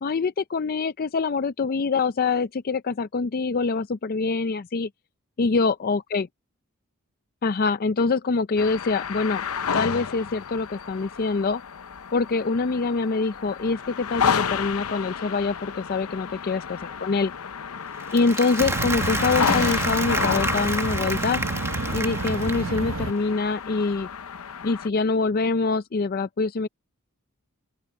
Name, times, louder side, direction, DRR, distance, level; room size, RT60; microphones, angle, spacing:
voice 1, 0.0-4.9 5.4-6.3 7.4-9.4 9.7-11.6 12.1-17.3 18.1-21.4 21.9-24.1 24.6-26.7, left 4 dB, 45° left, 0.5 m, -25 dB
sound 1, 8.6-24.9, left 7 dB, 85° left, 0.7 m, -31 dB
Applause, 18.0-23.0, right 2 dB, 10° right, 1.6 m, -30 dB
sound 2, 18.6-23.1, right 3 dB, 65° right, 0.9 m, -30 dB
open air
head